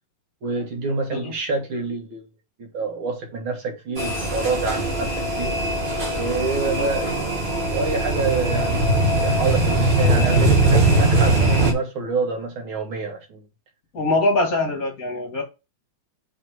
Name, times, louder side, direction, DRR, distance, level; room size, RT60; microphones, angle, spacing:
voice 1, 0.4-2.2 2.6-5.5 6.2-7.2 7.7-13.4, right 3 dB, 75° right, 2.4 m, -27 dB
sound 1, 4.0-11.7, right 2 dB, 30° right, 1.4 m, -20 dB
voice 2, 13.9-15.4, left 2 dB, 45° left, 2.0 m, -23 dB
4.6 x 4.6 x 5.6 m
omnidirectional pair, 2.3 m